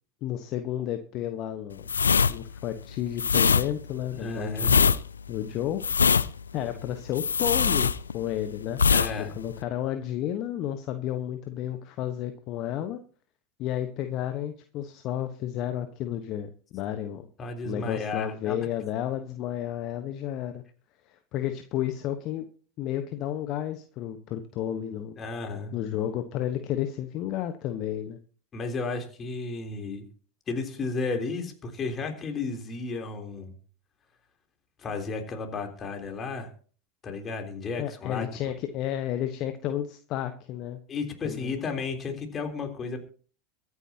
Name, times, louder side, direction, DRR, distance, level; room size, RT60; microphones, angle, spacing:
voice 1, 0.2-1.9 2.3-5.0 5.3-5.8 6.5-8.8 9.4-13.0 13.6-17.3 17.6-20.6 21.1-22.5 22.8-25.2 25.7-28.2 37.8-40.8 41.2-41.6, left 11 dB, 45° left, 8 dB, 1.2 m, -32 dB
sound 1, 1.8-8.4 8.7-9.1 9.4-9.6, left 6 dB, 85° left, 0.5 m, -22 dB
voice 2, 4.2-4.8 8.9-9.3 17.4-18.7 25.2-25.7 28.5-30.1 30.5-33.5 34.8-36.5 37.0-38.3 40.9-43.0, left 4 dB, 30° left, 3 dB, 3.6 m, -33 dB
23.5 x 9.7 x 2.9 m, 0.42 s
hypercardioid pair, 85°, 0 cm